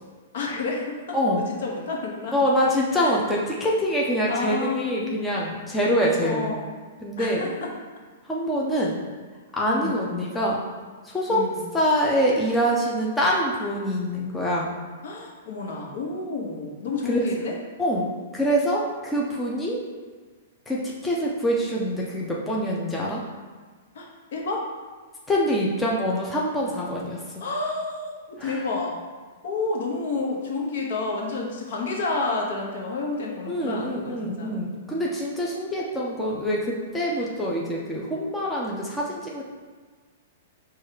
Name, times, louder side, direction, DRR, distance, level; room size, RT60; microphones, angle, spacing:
voice 1, 0.3-2.3 2.9-3.2 4.3-5.0 6.2-6.8 7.2-7.7 9.7-10.2 11.3-11.7 15.0-17.6 23.9-24.7 27.4-29.0 29.4-34.6 37.2-37.3, left 3 dB, 65° left, -1 dB, 1.0 m, -30 dB
voice 2, 2.3-6.5 7.0-7.4 8.3-8.9 9.5-10.6 11.0-11.4 11.7-14.7 17.1-17.2 17.8-19.8 20.7-23.2 25.3-27.2 33.5-39.4, equal, 5° left, -4 dB, 0.4 m, -25 dB
4.6 x 2.4 x 4.6 m, 1.5 s
hypercardioid pair, 160°, 0 cm